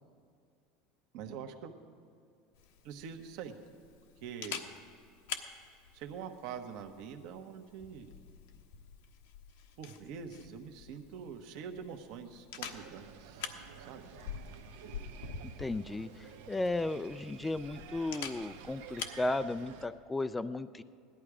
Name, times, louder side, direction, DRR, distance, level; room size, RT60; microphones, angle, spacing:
voice 1, 1.1-1.7 2.8-3.5 4.2-4.6 5.9-8.1 9.8-14.0, right 7 dB, 60° right, 6 dB, 1.2 m, -45 dB
Camera, 2.5-19.2, left 7 dB, 90° left, 1.2 m, -47 dB
sound 1, 12.6-19.9, right 8 dB, 85° right, 0.9 m, -51 dB
voice 2, 15.6-20.8, left 2 dB, 10° left, 12 dB, 0.3 m, -35 dB
17.0 x 12.0 x 4.9 m, 2.4 s
supercardioid pair, 145°, 0 cm